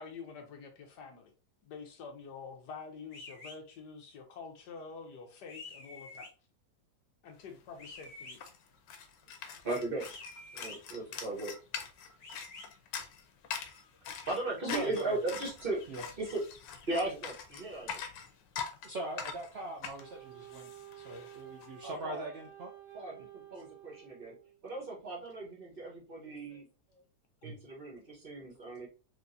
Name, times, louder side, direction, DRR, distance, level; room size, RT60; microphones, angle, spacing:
voice 1, 0.0-1.3 1.6-6.3 7.2-8.4, left 5 dB, 70° left, 1.3 m, -47 dB
sound 1, 3.1-3.6 5.5-6.3 7.8-8.4 10.0-10.8 12.2-12.7, left 3 dB, 50° left, 0.9 m, -48 dB
sound 2, 7.5-7.6 7.8-21.7, left 7 dB, 90° left, 1.3 m, -44 dB
voice 2, 9.6-10.1 10.5-11.5 14.3-15.8 16.2-16.4 16.9-18.0 21.8-22.2 22.9-24.3 24.6-26.7 27.4-28.9, right 2 dB, 35° right, 1.1 m, -37 dB
voice 3, 14.6-15.2 15.9-16.1 18.8-22.7 26.5-26.6 26.9-27.0 27.4-27.6, right 2 dB, 85° right, 0.5 m, -41 dB
Wind instrument woodwind instrument, 20.0-24.6, right 10 dB, 60° right, 1.3 m, -52 dB
4.6 x 2.6 x 2.6 m
omnidirectional pair, 1.9 m